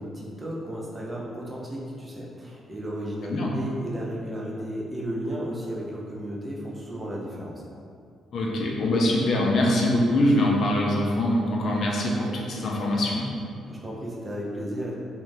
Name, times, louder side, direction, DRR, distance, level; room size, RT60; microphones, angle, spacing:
voice 1, 0.0-7.6 13.7-14.9, equal, 20° right, -4 dB, 0.6 m, -34 dB
voice 2, 8.3-13.3, left 1 dB, 60° left, -2 dB, 0.4 m, -23 dB
2.6 x 2.1 x 3.2 m, 2.4 s
cardioid pair, 90°, 0 cm